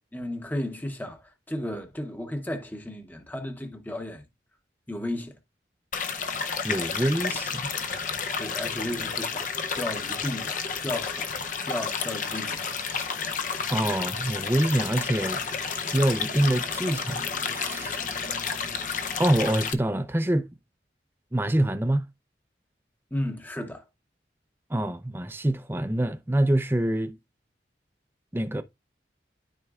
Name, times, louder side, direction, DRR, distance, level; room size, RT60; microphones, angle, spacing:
voice 1, 0.0-4.2 4.9-5.4 8.4-12.8 23.1-23.8, left 1 dB, 10° left, 0.9 m, -34 dB
sound 1, 5.9-19.7, left 5 dB, 45° left, 0.6 m, -31 dB
voice 2, 6.6-7.7 13.7-15.4 15.8-18.1 19.2-20.5 21.3-22.0 24.7-27.2 28.3-28.6, right 1 dB, 10° right, 0.5 m, -25 dB
12.5 x 4.5 x 2.4 m
head